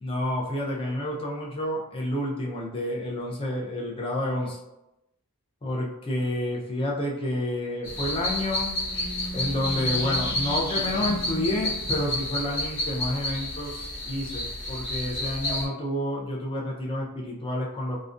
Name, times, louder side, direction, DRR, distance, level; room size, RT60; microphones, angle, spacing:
voice 1, 0.0-4.6 5.6-8.7 9.3-18.0, left 1 dB, 25° left, -2 dB, 0.5 m, -29 dB
sound 1, 7.8-15.7, left 1 dB, 55° left, 0.8 m, -30 dB
2.4 x 2.1 x 2.5 m, 0.90 s
head